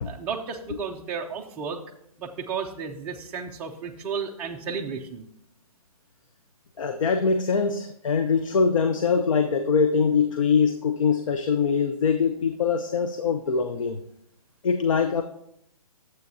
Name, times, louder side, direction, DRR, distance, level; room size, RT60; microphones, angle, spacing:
voice 1, 0.0-1.8 2.2-5.2, right 6 dB, 10° right, 0 dB, 0.4 m, -33 dB
voice 2, 6.8-14.0 14.6-15.2, left 5 dB, 60° left, 8 dB, 0.7 m, -23 dB
12.0 x 7.7 x 2.7 m, 0.76 s
hypercardioid pair, 155°, 19 cm